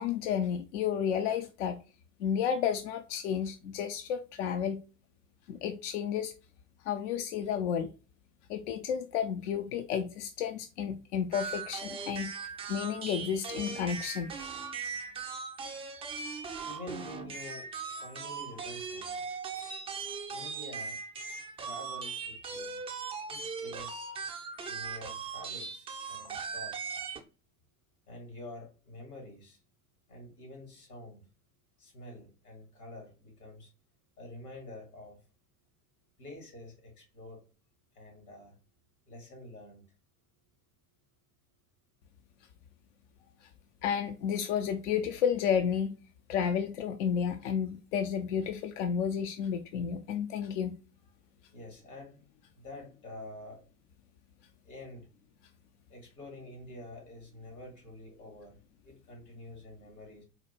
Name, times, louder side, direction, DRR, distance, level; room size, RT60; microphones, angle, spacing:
voice 1, 0.0-1.8 2.2-4.8 5.5-6.3 6.8-7.9 8.5-12.3 12.7-14.3 43.8-46.0 46.3-50.7, left 8 dB, 55° left, 0.4 m, -31 dB
sound 1, 11.3-27.2, right 5 dB, 15° right, 0.4 m, -39 dB
voice 2, 16.6-19.3 20.3-21.0 21.6-22.8 23.3-24.1 24.7-27.0 28.1-29.6 30.1-31.2 31.8-33.7 34.2-35.2 36.2-37.4 37.9-38.6 39.1-39.9 51.5-52.2 52.5-53.6 54.6-55.1 55.9-60.2, left 1 dB, 75° left, 2.0 m, -48 dB
4.1 x 2.2 x 2.9 m
figure-of-eight pair, 75°, 45 cm